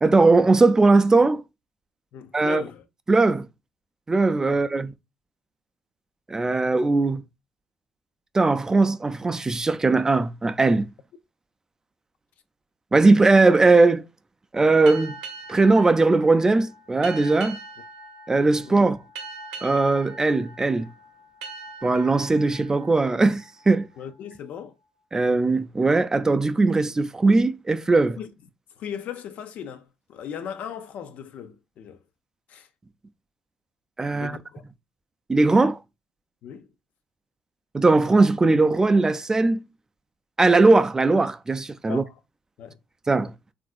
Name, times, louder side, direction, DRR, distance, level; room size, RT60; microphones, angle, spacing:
voice 1, 0.0-1.4 2.3-2.6 3.1-3.5 4.1-4.9 6.3-7.2 8.3-10.9 12.9-14.0 14.5-15.1 15.5-17.6 18.3-19.0 19.6-20.9 21.8-23.9 25.1-28.2 34.0-34.4 35.3-35.8 37.7-39.6 40.4-42.0 43.1-43.3, right 3 dB, 20° right, 0.3 m, -19 dB
voice 2, 2.1-2.8 4.5-4.6 18.6-18.9 24.0-24.7 28.2-28.3 28.8-32.0 32.5-32.7 34.1-34.7 36.4-36.7 41.8-42.1 42.6-42.8, left 8 dB, 70° left, 0.4 m, -37 dB
sound 1, 14.8-24.1, right 3 dB, 85° right, 0.6 m, -42 dB
3.4 x 2.5 x 2.4 m
supercardioid pair, 60°, 3 cm